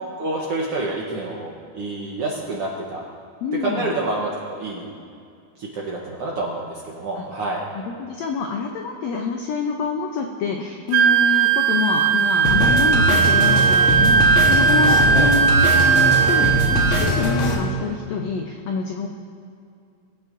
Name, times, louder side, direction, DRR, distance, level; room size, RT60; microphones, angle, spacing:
voice 1, 0.2-3.0 3.6-4.9 5.6-7.6 15.1-15.3, right 2 dB, 70° right, -2 dB, 1.4 m, -28 dB
voice 2, 3.4-3.9 7.2-7.3 7.7-19.1, left 5 dB, 90° left, 2 dB, 1.5 m, -27 dB
Wind instrument woodwind instrument, 10.9-17.1, right 6 dB, 90° right, 1.4 m, -17 dB
sound 1, 12.4-17.5, equal, 55° left, 1.6 m, -21 dB
22.0 x 8.9 x 2.6 m, 2.4 s
omnidirectional pair, 3.9 m